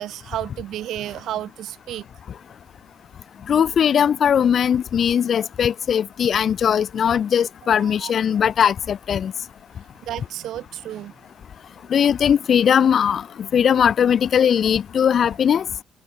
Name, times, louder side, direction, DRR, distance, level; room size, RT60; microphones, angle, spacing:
voice 1, 0.0-2.0 7.6-8.1 10.0-11.1, right 12 dB, 80° right, 4.5 m, -32 dB
voice 2, 3.5-9.3 11.9-15.7, left 8 dB, 55° left, 1.2 m, -19 dB
cardioid pair, 90°, 0 cm